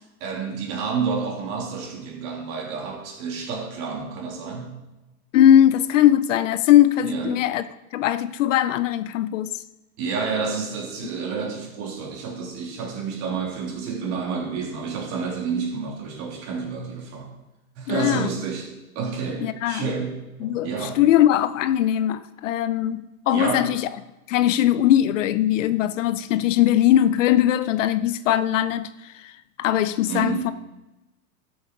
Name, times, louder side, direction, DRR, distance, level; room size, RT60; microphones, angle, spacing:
voice 1, 0.2-4.8 7.0-7.4 10.0-17.3 17.8-18.7 18.9-20.1 20.4-21.0 23.3-23.7 30.1-30.5, right 5 dB, 45° right, 0 dB, 3.2 m, -29 dB
voice 2, 5.3-7.6 7.9-9.6 17.9-18.3 19.4-19.9 20.4-23.9 24.3-30.5, left 11 dB, 55° left, 14 dB, 0.6 m, -20 dB
12.5 x 6.8 x 5.2 m, 1.0 s
hypercardioid pair, 135°, 45 cm